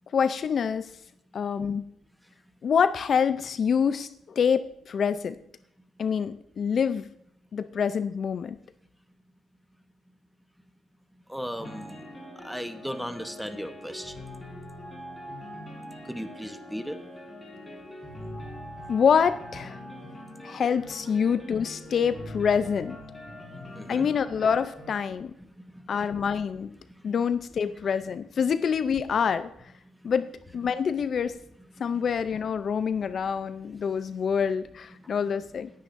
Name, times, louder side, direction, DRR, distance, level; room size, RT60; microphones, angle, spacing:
voice 1, 0.1-0.9 1.3-1.8 2.6-5.4 6.0-7.1 7.5-8.6 18.9-19.8 20.4-23.0 23.9-25.3 25.9-26.7 27.0-29.5 30.0-30.3 30.5-31.4 31.8-35.7, left 7 dB, 50° left, 13 dB, 0.5 m, -26 dB
voice 2, 11.3-12.0 12.4-14.1 16.1-17.0 23.7-24.1 26.0-26.1, equal, ahead, 9 dB, 1.0 m, -36 dB
sound 1, 11.6-24.9, left 1 dB, 15° left, 4.4 m, -43 dB
18.5 x 9.4 x 2.6 m, 0.74 s
cardioid pair, 90°, 0 cm